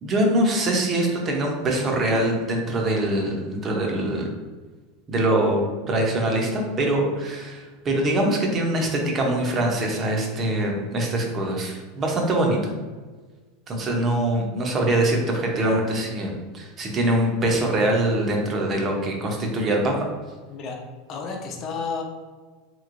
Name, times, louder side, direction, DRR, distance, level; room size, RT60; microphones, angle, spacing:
voice 1, 0.0-4.3 5.1-12.7 13.7-20.1, right 1 dB, 30° right, 1 dB, 0.7 m, -23 dB
voice 2, 20.4-20.8 21.1-22.0, left 5 dB, 40° left, 1 dB, 0.6 m, -31 dB
3.0 x 2.8 x 2.5 m, 1.4 s
supercardioid pair, 130°, 0 cm